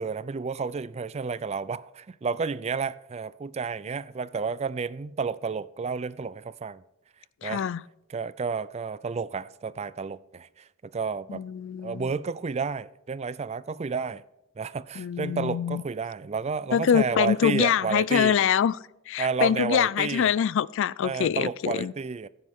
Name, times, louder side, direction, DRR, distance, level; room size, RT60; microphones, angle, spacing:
voice 1, 0.0-6.8 7.4-7.6 8.1-11.4 11.8-14.2 14.6-18.4 19.2-20.3 21.0-22.3, right 5 dB, 30° right, 0.4 m, -31 dB
voice 2, 7.4-7.8 11.3-12.1 15.0-15.8 16.7-18.8 19.1-21.9, left 8 dB, 60° left, 0.3 m, -24 dB
15.0 x 9.5 x 3.6 m
head